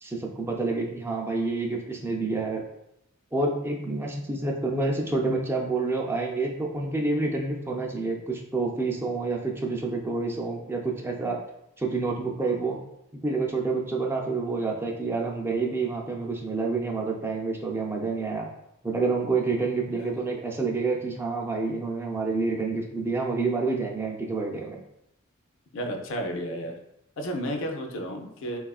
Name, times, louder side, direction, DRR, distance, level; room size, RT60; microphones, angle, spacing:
voice 1, 0.0-2.6 3.3-11.4 11.8-12.8 13.1-18.5 18.8-24.8, right 3 dB, 10° right, 0 dB, 0.3 m, -28 dB
voice 2, 25.7-26.8 27.2-28.6, equal, 65° left, 2 dB, 0.5 m, -32 dB
3.4 x 2.3 x 2.3 m, 0.82 s
head